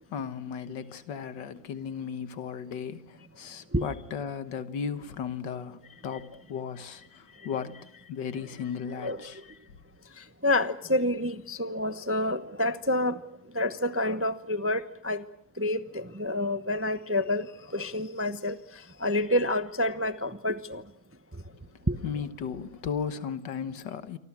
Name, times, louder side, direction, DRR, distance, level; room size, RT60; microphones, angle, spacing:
voice 1, 0.1-7.8 8.1-9.4 22.0-24.2, left 7 dB, 85° left, 1.9 m, -35 dB
voice 2, 9.0-9.4 10.2-13.2 13.5-15.2 15.6-20.8 21.9-22.0, left 1 dB, 15° right, 0.4 m, -28 dB
28.0 x 25.0 x 6.1 m
omnidirectional pair, 1.9 m